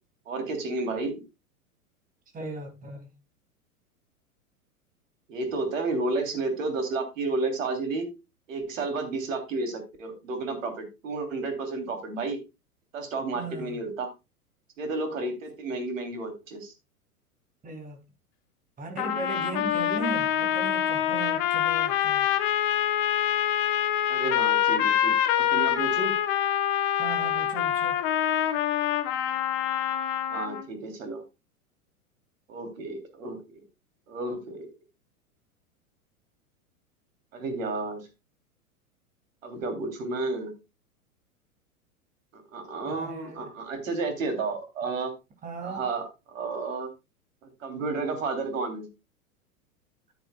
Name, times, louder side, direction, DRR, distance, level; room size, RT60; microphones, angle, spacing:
voice 1, 0.3-1.2 5.3-8.1 8.5-12.4 12.9-14.1 14.8-16.7 24.1-26.1 30.3-31.2 32.5-33.6 34.1-34.6 37.3-38.0 39.4-40.5 42.3-45.1 45.6-46.9 47.6-48.9, right 3 dB, 60° right, 3.2 m, -31 dB
voice 2, 2.3-3.1 13.3-13.8 17.6-18.0 18.8-22.3 27.0-28.0 42.9-43.5 45.4-45.8, right 3 dB, 20° right, 2.8 m, -37 dB
sound 1, 19.0-30.6, left 10 dB, 40° left, 1.1 m, -25 dB
13.0 x 8.1 x 2.3 m
figure-of-eight pair, 95°, 44 cm